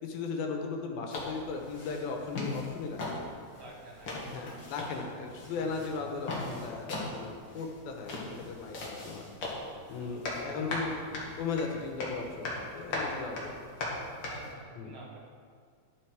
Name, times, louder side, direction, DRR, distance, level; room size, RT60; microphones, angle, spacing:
voice 1, 0.0-3.3 4.3-9.3 9.9-13.6 14.8-14.9, left 4 dB, 85° left, 2 dB, 2.9 m, -37 dB
sound 1, 1.1-14.5, left 2 dB, 45° left, 2.0 m, -39 dB
voice 2, 3.5-4.6 5.5-5.9 10.0-10.9 14.3-15.2, right 2 dB, 40° right, -4 dB, 2.2 m, -50 dB
11.0 x 8.2 x 4.7 m, 2.1 s
omnidirectional pair, 4.2 m